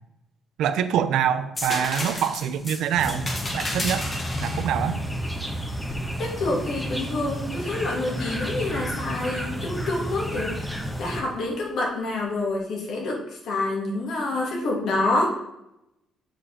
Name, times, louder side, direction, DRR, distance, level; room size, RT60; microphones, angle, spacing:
voice 1, 0.6-4.0 4.4-5.0, right 9 dB, 85° right, 12 dB, 0.5 m, -25 dB
sound 1, 1.6-7.2 7.7-8.7 10.7-10.9, left 2 dB, 30° left, 1.7 m, -34 dB
sound 2, 3.0-11.2, equal, 5° left, 1.2 m, -31 dB
voice 2, 6.2-15.3, left 2 dB, 75° left, -2 dB, 2.6 m, -27 dB
7.2 x 5.4 x 4.2 m, 0.85 s
cardioid pair, 90°, 0 cm